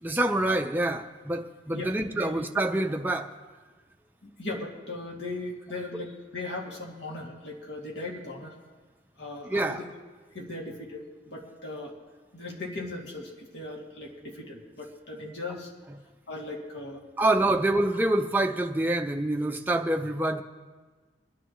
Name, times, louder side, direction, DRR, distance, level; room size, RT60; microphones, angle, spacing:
voice 1, 0.0-3.3 9.5-9.8 17.2-20.4, right 1 dB, 10° right, 4 dB, 0.5 m, -26 dB
voice 2, 1.7-2.3 4.2-8.5 9.2-9.9 10.3-11.9 12.3-15.7 16.3-17.0, left 2 dB, 70° left, -2 dB, 2.4 m, -38 dB
23.0 x 10.0 x 3.1 m, 1.4 s
head